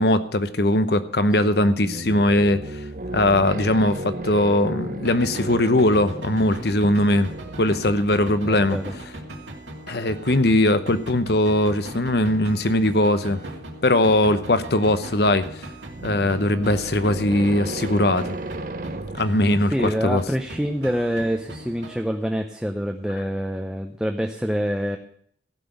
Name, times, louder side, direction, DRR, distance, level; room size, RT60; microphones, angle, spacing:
voice 1, 0.0-2.8 3.1-7.3 7.6-8.8 9.9-13.4 13.8-15.5 16.0-18.4 19.1-20.2, left 1 dB, 60° left, 0.9 m, -20 dB
sound 1, 1.5-8.3 15.8-19.2, right 2 dB, 50° right, 0.8 m, -34 dB
sound 2, 5.0-17.9 18.2-22.0, right 1 dB, 85° right, 2.7 m, -39 dB
voice 2, 8.4-8.9 19.7-25.0, equal, 5° right, 0.6 m, -26 dB
15.0 x 6.1 x 7.9 m
head